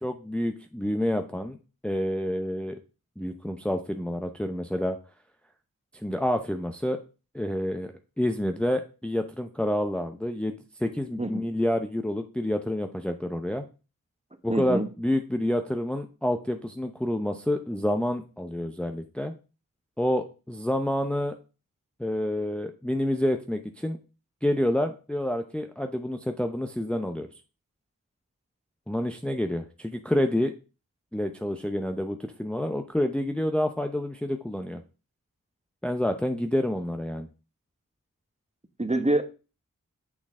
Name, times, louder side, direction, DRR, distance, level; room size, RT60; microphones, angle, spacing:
voice 1, 0.0-1.6 1.8-2.8 3.2-5.0 6.0-7.0 7.3-13.7 14.4-19.3 20.0-21.3 22.0-24.0 24.4-27.3 28.9-30.5 31.1-34.8 35.8-37.3, left 1 dB, 5° left, 6 dB, 0.6 m, -28 dB
voice 2, 14.5-14.9 38.8-39.2, right 2 dB, 20° right, 8 dB, 1.0 m, -25 dB
8.5 x 3.9 x 3.7 m, 0.32 s
cardioid pair, 45°, 34 cm